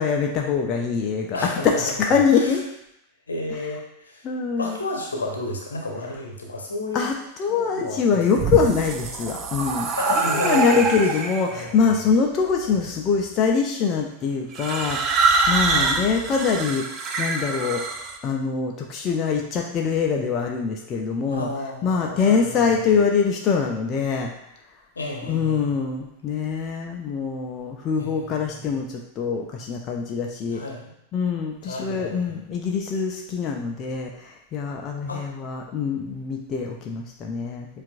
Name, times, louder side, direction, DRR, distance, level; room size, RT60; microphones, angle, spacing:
voice 1, 0.0-2.6 4.2-4.8 6.9-9.9 10.3-15.0 15.5-16.9 17.2-17.8 18.2-21.5 21.8-24.3 25.3-30.6 31.1-37.7, left 5 dB, 30° left, 1 dB, 0.5 m, -24 dB
voice 2, 1.3-2.5 3.3-4.2 4.6-7.1 7.5-8.2 10.0-10.9 11.5-11.8 12.6-12.8 15.6-16.0 21.3-22.9 25.0-25.7 28.0-28.9 30.5-30.9 31.6-32.4 35.1-35.2, left 2 dB, 75° left, 0 dB, 0.8 m, -31 dB
sound 1, 8.2-11.6 12.5-13.0 14.5-18.2, right 4 dB, 35° right, 0.4 m, -25 dB
7.1 x 2.5 x 2.4 m, 0.79 s
figure-of-eight pair, 90°, 0 cm